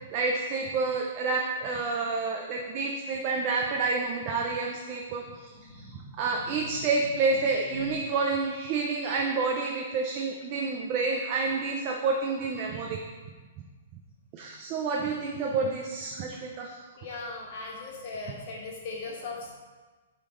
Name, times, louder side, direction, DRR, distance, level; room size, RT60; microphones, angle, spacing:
voice 1, 0.1-13.0 14.3-16.7, right 4 dB, 25° right, 0 dB, 0.4 m, -29 dB
voice 2, 5.5-7.5 7.7-8.0 16.9-19.5, left 3 dB, 35° left, -3 dB, 1.4 m, -40 dB
8.3 x 3.6 x 3.8 m, 1.3 s
hypercardioid pair, 175°, 0 cm